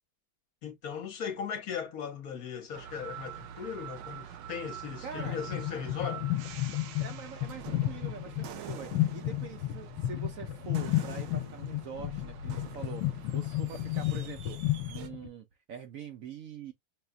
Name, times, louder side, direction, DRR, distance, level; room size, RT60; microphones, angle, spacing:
voice 1, 0.6-6.3, left 7 dB, 60° left, 1.2 m, -38 dB
sound 1, 2.7-15.1, right 7 dB, 85° right, 1.3 m, -45 dB
voice 2, 5.0-5.4 7.0-14.6 14.9-16.7, right 7 dB, 60° right, 1.0 m, -44 dB
sound 2, 5.1-15.3, left 15 dB, 90° left, 1.2 m, -32 dB
5.6 x 2.3 x 2.3 m
omnidirectional pair, 1.9 m